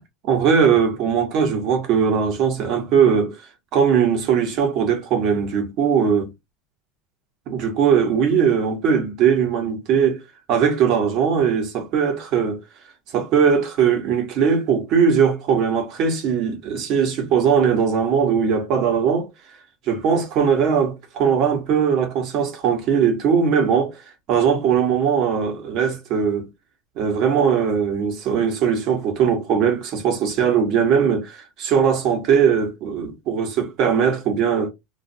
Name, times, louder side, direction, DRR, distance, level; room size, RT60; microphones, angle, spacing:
voice 1, 0.3-3.4 3.7-6.3 7.5-10.2 10.5-12.6 13.1-19.3 19.9-24.0 24.3-26.5 27.0-34.7, right 7 dB, 50° right, 1.1 m, -20 dB
2.5 x 2.4 x 2.6 m
supercardioid pair, 130°, 0 cm